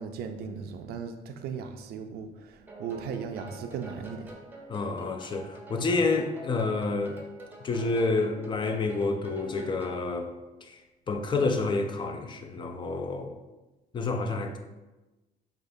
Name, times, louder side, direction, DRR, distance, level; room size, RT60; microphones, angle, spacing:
voice 1, 0.0-4.3, right 6 dB, 70° right, 0.4 m, -37 dB
sound 1, 2.7-10.1, right 1 dB, 10° right, 0.7 m, -47 dB
voice 2, 4.7-7.2 7.6-10.3 10.6-10.8 11.1-13.3 13.9-14.6, left 3 dB, 30° left, 0.4 m, -29 dB
4.9 x 2.4 x 2.6 m
cardioid pair, 110°, 17 cm